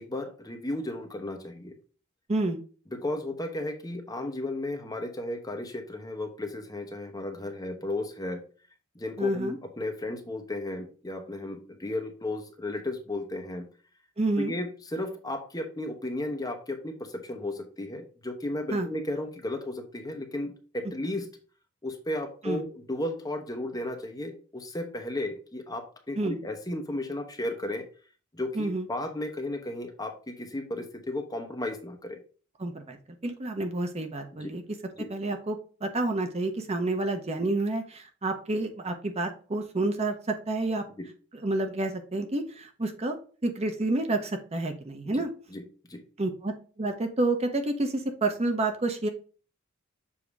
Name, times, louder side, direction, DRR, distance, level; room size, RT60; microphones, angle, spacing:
voice 1, 0.0-1.7 2.9-8.4 9.0-13.7 14.4-21.3 21.8-27.8 28.3-32.2 34.4-34.5 35.0-35.1 41.0-41.1 45.1-45.2 45.5-45.6 45.9-46.0, left 1 dB, 20° left, 4 dB, 0.9 m, -34 dB
voice 2, 9.2-9.5 14.2-14.5 18.7-18.9 22.4-22.6 26.1-26.4 28.6-28.9 32.6-33.0 33.2-34.8 35.1-40.8 41.4-43.2 43.4-45.3 46.2-49.1, right 2 dB, 30° right, 5 dB, 0.7 m, -29 dB
7.1 x 2.8 x 4.7 m, 0.38 s
head